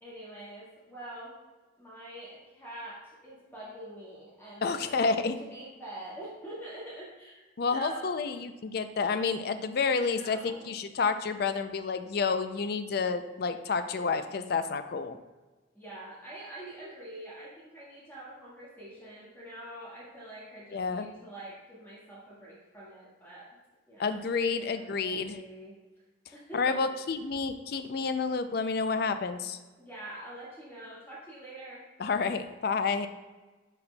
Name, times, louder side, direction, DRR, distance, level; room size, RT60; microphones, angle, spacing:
voice 1, 0.0-1.4 1.8-8.1 9.9-10.8 15.7-23.5 23.9-25.8 26.3-26.9 29.8-31.8, right 1 dB, 10° left, -8 dB, 1.6 m, -45 dB
voice 2, 4.6-5.3 7.6-15.2 20.7-21.1 24.0-25.4 26.5-29.6 32.0-33.1, left 4 dB, 55° left, 10 dB, 0.4 m, -29 dB
10.5 x 4.2 x 2.2 m, 1.2 s
head